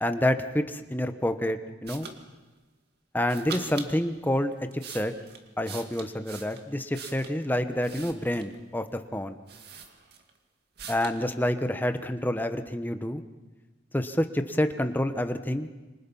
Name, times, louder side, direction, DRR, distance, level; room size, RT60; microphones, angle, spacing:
voice 1, 0.0-2.1 3.1-5.1 5.6-9.4 10.9-13.2 13.9-15.7, left 1 dB, 10° left, 8 dB, 1.0 m, -28 dB
sound 1, 1.9-2.2 3.3-3.9 4.5-7.4 7.8-8.6 9.1-9.2 9.5-10.4 10.8-11.2, right 6 dB, 60° right, 2.2 m, -42 dB
27.5 x 25.5 x 5.6 m, 1.2 s
head